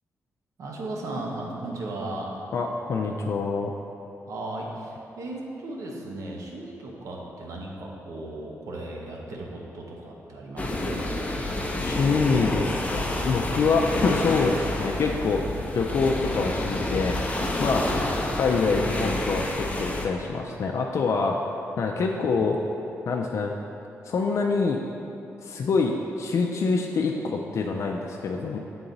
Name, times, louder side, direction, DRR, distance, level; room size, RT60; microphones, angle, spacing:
voice 1, 0.6-2.4 4.3-11.1 13.8-14.1 17.8-18.0 22.1-22.4, right 2 dB, 75° right, -1 dB, 0.9 m, -36 dB
voice 2, 2.5-3.7 11.8-15.4 15.7-17.2 17.6-17.8 18.4-21.4 21.8-22.6 23.1-23.5 24.0-24.8 25.4-28.6, left 4 dB, 60° left, 1 dB, 0.4 m, -25 dB
sound 1, 10.6-20.1, left 1 dB, 25° left, 0.7 m, -28 dB
7.1 x 3.9 x 3.9 m, 2.9 s
cardioid pair, 80°, 6 cm